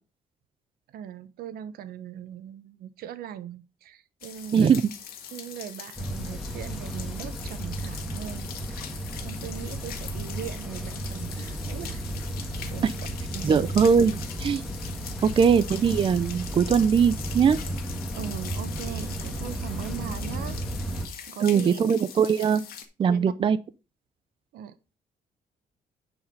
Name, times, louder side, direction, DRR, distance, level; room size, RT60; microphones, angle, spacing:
voice 1, 0.9-4.8 5.3-8.9 9.2-12.0 12.7-12.9 13.3-13.7 15.0-15.3 18.1-20.6 21.3-21.8 23.0-23.3 24.5-24.8, right 10 dB, 85° right, 0.9 m, -39 dB
sound 1, 4.2-22.9, left 9 dB, 85° left, 1.7 m, -42 dB
voice 2, 4.5-4.9 12.8-12.9 13.4-14.1 14.4-14.6 15.2-17.6 21.4-22.6 23.0-23.6, right 6 dB, 35° right, 0.5 m, -21 dB
sound 2, 6.0-21.1, right 1 dB, ahead, 1.7 m, -34 dB
9.7 x 4.9 x 5.3 m
cardioid pair, 135°, 15 cm